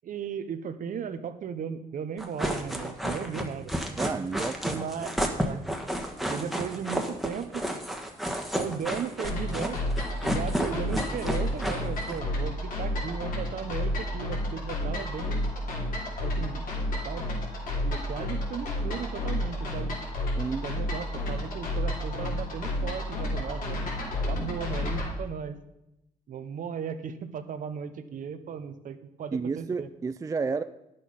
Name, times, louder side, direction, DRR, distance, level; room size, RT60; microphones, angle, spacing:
voice 1, 0.0-3.7 4.6-5.6 6.3-7.6 8.6-9.8 10.2-15.5 16.2-16.6 17.0-17.3 17.8-19.9 20.5-23.9 24.3-25.6 26.3-29.9, right 7 dB, 60° right, 11 dB, 0.9 m, -36 dB
sound 1, 2.2-12.2, equal, ahead, 1.4 m, -31 dB
voice 2, 4.0-4.8 20.4-20.7 29.3-30.6, right 4 dB, 20° right, 11 dB, 0.4 m, -31 dB
sound 2, 9.2-25.1, left 1 dB, 65° left, 3.2 m, -31 dB
10.0 x 6.9 x 5.5 m, 0.87 s
cardioid pair, 80°, 15 cm